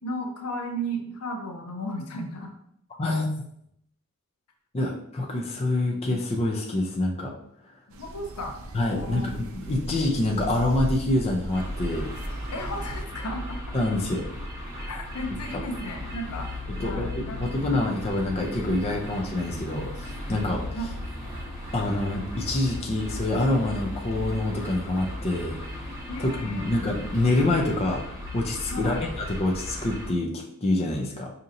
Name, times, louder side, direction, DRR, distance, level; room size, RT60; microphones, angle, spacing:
voice 1, 0.0-2.5 8.0-8.6 8.9-9.3 12.5-13.6 14.8-16.5 16.8-17.8 20.7-20.9 22.8-23.0 26.1-26.7 28.7-29.0, equal, 90° left, 4 dB, 0.7 m, -34 dB
voice 2, 3.0-3.3 4.7-7.3 8.7-12.1 13.7-14.3 16.8-20.6 21.7-25.6 26.2-28.0 28.3-31.3, left 2 dB, 25° left, 0 dB, 0.4 m, -26 dB
sound 1, 7.9-13.0, right 1 dB, 65° right, 0.5 m, -37 dB
sound 2, 11.5-30.1, left 1 dB, 15° right, 0.9 m, -36 dB
5.1 x 2.8 x 2.6 m, 0.72 s
head